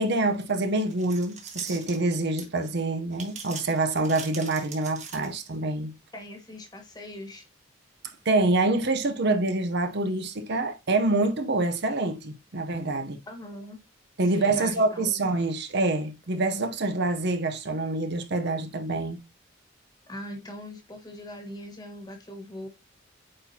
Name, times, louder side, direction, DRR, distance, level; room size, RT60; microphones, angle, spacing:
voice 1, 0.0-5.9 8.3-13.2 14.2-19.2, right 2 dB, 55° right, 0.7 m, -26 dB
sound 1, 0.7-2.7 3.1-5.6, right 5 dB, 35° right, 1.6 m, -41 dB
voice 2, 6.1-7.4 13.3-13.8 14.3-15.4 20.1-22.7, left 1 dB, 20° left, 1.4 m, -41 dB
8.7 x 4.2 x 2.8 m
head